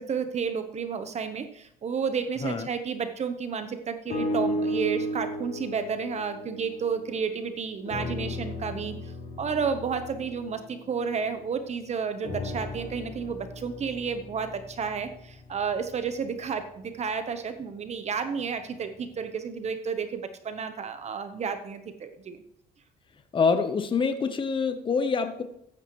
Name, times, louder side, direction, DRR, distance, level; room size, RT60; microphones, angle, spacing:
voice 1, 0.0-8.9 9.4-22.4, right 6 dB, 40° right, 9 dB, 1.0 m, -31 dB
sound 1, 4.1-7.4 7.8-11.6 12.2-16.4 17.1-17.2, left 1 dB, 60° left, 4.2 m, -35 dB
voice 2, 23.3-25.4, left 5 dB, 30° left, 8 dB, 1.0 m, -25 dB
14.0 x 9.8 x 3.1 m, 0.74 s
cardioid pair, 110°, 17 cm